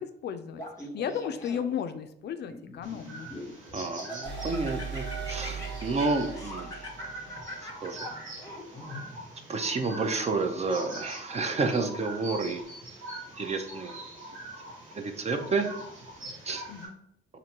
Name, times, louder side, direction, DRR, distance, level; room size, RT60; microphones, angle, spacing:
voice 1, 0.2-0.6 0.9-3.3 16.7-17.0, left 8 dB, 60° left, 9 dB, 0.4 m, -34 dB
Laughter, 0.5-1.9 2.5-3.5 4.0-9.0, left 1 dB, 15° left, 0.9 m, -42 dB
sound 1, 2.8-16.9, right 2 dB, 85° right, 1.1 m, -43 dB
voice 2, 3.7-6.8 7.8-8.0 9.5-12.7 13.4-14.0 14.9-15.7 16.4-16.6, right 3 dB, 35° right, 6 dB, 0.6 m, -30 dB
metal pads, 4.3-8.0, right 6 dB, 65° right, 0.7 m, -39 dB
4.4 x 2.6 x 2.8 m, 0.73 s
cardioid pair, 90°, 20 cm